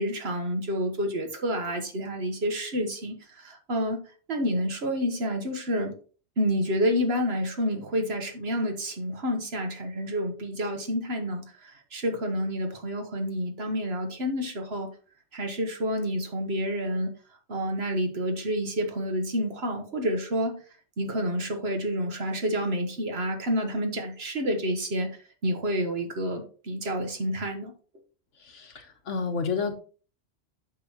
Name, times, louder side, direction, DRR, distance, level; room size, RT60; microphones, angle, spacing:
voice 1, 0.0-4.0 4.3-5.9 6.4-14.9 15.3-17.1 17.5-20.6 21.0-25.1 25.4-27.7, equal, 60° right, 5 dB, 1.5 m, -29 dB
voice 2, 28.5-29.8, left 5 dB, 80° left, 6 dB, 1.5 m, -30 dB
8.2 x 6.0 x 2.9 m, 0.39 s
omnidirectional pair, 1.2 m